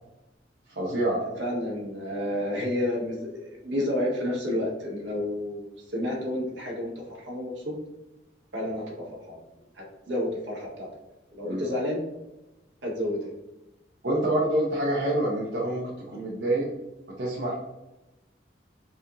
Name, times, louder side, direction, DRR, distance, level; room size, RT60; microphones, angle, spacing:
voice 1, 0.7-1.2 11.4-11.6 14.0-16.7 17.2-17.6, right 1 dB, 65° right, -6 dB, 0.7 m, -26 dB
voice 2, 1.4-7.8 8.5-9.4 9.7-10.9 11.3-12.0 12.8-13.3, left 1 dB, 80° right, -2 dB, 1.1 m, -30 dB
4.1 x 2.4 x 2.7 m, 0.99 s
head